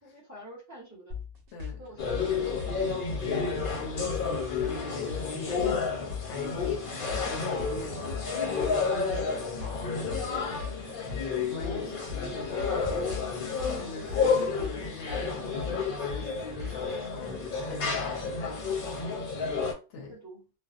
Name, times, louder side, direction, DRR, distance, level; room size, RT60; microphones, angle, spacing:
voice 1, 0.0-1.2 1.8-2.7 9.1-9.6 9.9-11.4 11.7-13.3 20.1-20.4, right 1 dB, 15° right, 0.7 m, -48 dB
sound 1, 1.1-17.0, left 6 dB, 60° right, 0.8 m, -39 dB
sound 2, 2.0-19.7, left 5 dB, 55° left, 0.8 m, -31 dB
voice 2, 3.2-8.2 11.5-12.0 13.6-19.0 19.9-20.2, left 3 dB, 80° left, 0.9 m, -41 dB
2.5 x 2.0 x 2.4 m
omnidirectional pair, 1.2 m